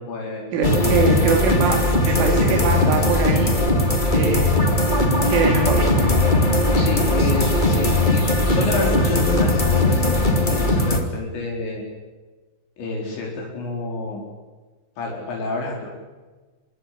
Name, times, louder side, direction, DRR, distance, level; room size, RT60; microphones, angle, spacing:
voice 1, 0.0-0.5 0.8-1.1 2.8-3.2 6.7-11.8 12.8-14.2 15.0-15.9, left 3 dB, 70° left, -1 dB, 6.7 m, -29 dB
voice 2, 0.5-1.8 2.1-3.6 4.1-4.7 5.3-5.9, right 4 dB, 85° right, 0 dB, 5.4 m, -23 dB
sound 1, 0.6-11.0, left 1 dB, 25° left, 1.1 m, -19 dB
25.5 x 22.5 x 8.5 m, 1.3 s
omnidirectional pair, 5.4 m